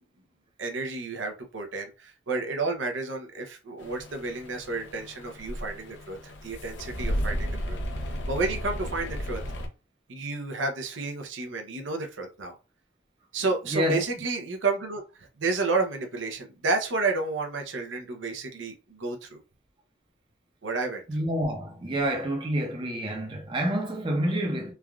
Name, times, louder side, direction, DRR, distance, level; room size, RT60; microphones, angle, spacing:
voice 1, 0.6-7.8 8.3-9.4 10.1-12.6 13.3-19.4 20.6-21.0, right 3 dB, 90° right, 0.6 m, -31 dB
sound 1, 3.8-9.7, equal, 80° left, 0.6 m, -34 dB
voice 2, 13.7-14.0 21.1-24.7, equal, 25° right, 0.6 m, -28 dB
3.3 x 2.3 x 2.3 m
head